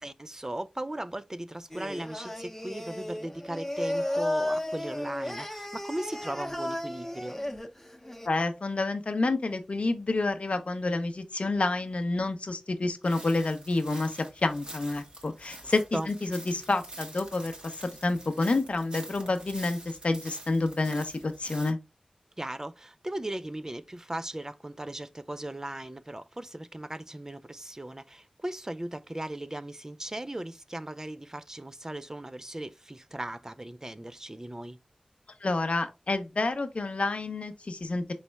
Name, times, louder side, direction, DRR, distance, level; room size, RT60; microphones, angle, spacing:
voice 1, 0.0-7.4 15.6-16.1 22.4-34.8, right 1 dB, 25° right, 0.4 m, -38 dB
Singing, 1.7-8.3, left 1 dB, 10° left, 0.7 m, -34 dB
voice 2, 8.2-21.8 35.4-38.0, left 2 dB, 65° left, 0.6 m, -29 dB
sound 1, 13.0-21.7, right 1 dB, 45° right, 1.3 m, -46 dB
4.1 x 3.1 x 3.3 m
wide cardioid pair, 55°, 2 cm